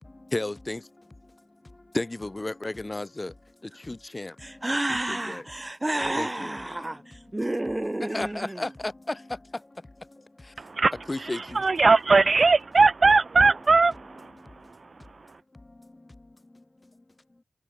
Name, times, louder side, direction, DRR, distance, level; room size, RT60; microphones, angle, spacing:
voice 1, 0.0-5.4 6.1-6.5 8.1-11.7 14.3-14.7 15.5-16.9, left 2 dB, 30° left, 3.5 m, -36 dB
voice 2, 4.4-8.7, right 1 dB, 20° right, 4.5 m, -30 dB
voice 3, 11.6-13.9, right 4 dB, 55° right, 2.1 m, -19 dB
cardioid pair, 60°, 0 cm